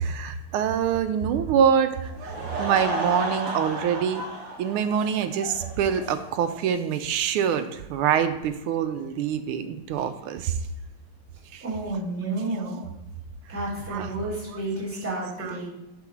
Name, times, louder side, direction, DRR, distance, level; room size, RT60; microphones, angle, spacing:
voice 1, 0.0-4.2 4.6-10.6 11.5-11.6 12.5-12.9 13.5-13.6 13.9-14.1 14.5-14.6 15.4-15.6, right 8 dB, 85° right, 10 dB, 1.5 m, -25 dB
Laughter / Crowd, 2.1-6.6, right 1 dB, 60° right, 1.7 m, -33 dB
voice 2, 11.6-12.8 13.5-15.7, right 2 dB, 5° right, -7 dB, 2.9 m, -31 dB
7.5 x 4.1 x 6.0 m, 0.91 s
omnidirectional pair, 2.4 m